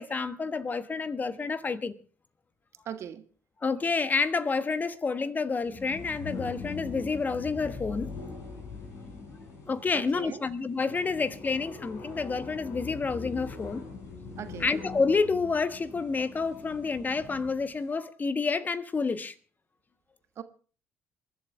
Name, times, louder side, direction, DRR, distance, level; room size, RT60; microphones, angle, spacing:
voice 1, 0.0-1.9 3.6-8.1 9.7-13.8 14.6-19.3, left 4 dB, 30° left, 1.2 m, -29 dB
voice 2, 2.8-3.2 9.9-10.4 14.4-14.7 20.4-20.5, right 9 dB, 50° right, 1.4 m, -39 dB
sound 1, 5.6-17.6, left 4 dB, 55° left, 5.2 m, -42 dB
28.0 x 11.5 x 3.4 m
figure-of-eight pair, 50°, 6 cm